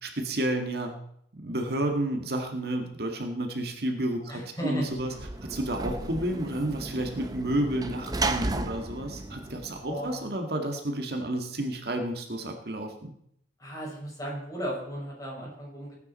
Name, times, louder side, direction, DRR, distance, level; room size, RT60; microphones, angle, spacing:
voice 1, 0.0-0.9 1.4-5.1 5.4-13.1, right 1 dB, 60° right, 3 dB, 1.8 m, -31 dB
voice 2, 4.3-4.9 9.9-10.3 13.6-15.9, right 1 dB, 20° left, -4 dB, 6.1 m, -35 dB
Sliding door / Slam, 4.9-10.3, right 2 dB, 20° right, 0.8 m, -34 dB
19.0 x 9.5 x 4.2 m, 0.69 s
head